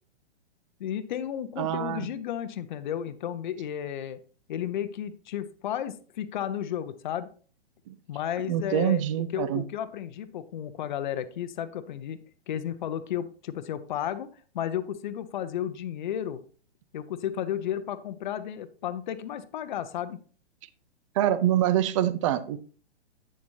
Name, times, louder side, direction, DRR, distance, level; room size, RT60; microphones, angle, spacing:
voice 1, 0.8-4.2 4.5-7.3 8.1-9.0 9.3-12.2 12.5-16.4 16.9-20.2, left 10 dB, 45° left, 12 dB, 0.7 m, -33 dB
voice 2, 1.6-2.1 7.9-8.0 8.5-9.6 21.2-22.6, right 11 dB, 30° right, 14 dB, 0.5 m, -25 dB
8.6 x 6.8 x 2.7 m, 0.41 s
figure-of-eight pair, 120°, 33 cm